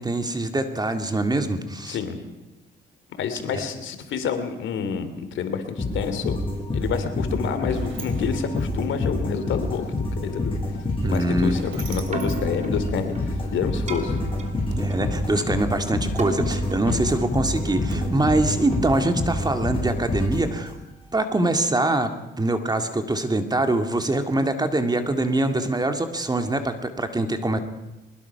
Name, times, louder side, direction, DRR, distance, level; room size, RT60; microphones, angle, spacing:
voice 1, 0.0-2.0 3.5-3.6 11.0-11.6 14.8-20.7 21.1-22.1 22.4-27.6, right 2 dB, 20° right, 7 dB, 2.3 m, -24 dB
voice 2, 1.9-2.2 3.2-6.4 6.7-10.5 11.1-14.2 16.9-17.2, left 6 dB, 75° left, 8 dB, 3.0 m, -28 dB
sound 1, 5.8-21.0, left 2 dB, 25° left, 7.4 m, -28 dB
Sliding door, 7.3-13.5, right 7 dB, 85° right, 3.2 m, -46 dB
Keyboard (musical), 12.0-20.1, right 4 dB, 35° right, 3.2 m, -37 dB
22.5 x 20.5 x 5.9 m, 1.0 s
cardioid pair, 90°, 20 cm